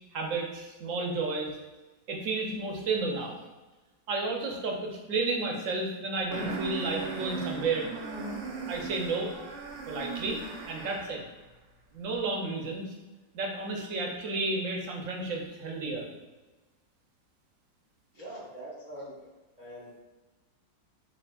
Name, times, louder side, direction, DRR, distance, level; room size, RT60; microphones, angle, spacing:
voice 1, 0.1-1.5 2.1-3.3 4.1-7.8 8.7-9.3 9.9-10.4 10.7-11.2 11.9-12.9 13.3-16.1, right 3 dB, 60° right, 0 dB, 0.9 m, -32 dB
sound 1, 6.3-11.2, right 4 dB, 80° right, 1.4 m, -37 dB
voice 2, 18.1-19.1 19.6-20.0, right 1 dB, 30° right, -8 dB, 0.9 m, -43 dB
5.9 x 3.1 x 2.3 m, 1.2 s
omnidirectional pair, 1.9 m